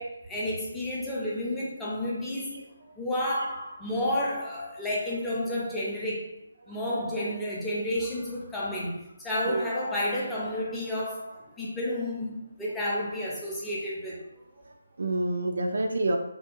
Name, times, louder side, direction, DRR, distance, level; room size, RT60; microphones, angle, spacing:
voice 1, 0.0-2.6 3.0-6.3 6.7-14.2, left 1 dB, 5° left, -7 dB, 0.5 m, -31 dB
voice 2, 14.6-16.2, right 2 dB, 70° right, 4 dB, 0.3 m, -29 dB
2.7 x 2.3 x 2.5 m, 0.81 s
figure-of-eight pair, 160°, 0 cm